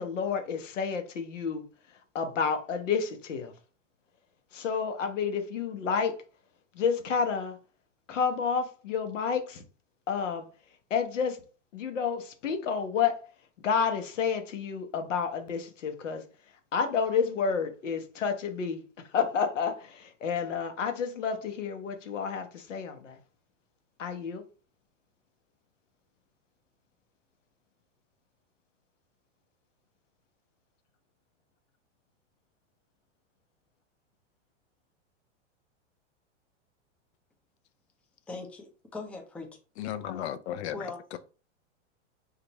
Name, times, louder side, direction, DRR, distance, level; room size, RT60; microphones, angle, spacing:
voice 1, 0.0-1.6 2.1-3.5 4.5-6.1 6.8-7.6 8.1-9.6 10.1-10.4 10.9-11.4 11.7-13.1 13.6-16.2 16.7-18.8 19.1-23.2 24.0-24.4, left 6 dB, 90° left, 0.8 m, -30 dB
voice 2, 38.3-39.5 40.7-41.2, left 3 dB, 5° left, 0.4 m, -40 dB
voice 3, 39.8-41.2, left 10 dB, 65° left, 0.5 m, -35 dB
2.8 x 2.5 x 4.0 m
hypercardioid pair, 115°, 36 cm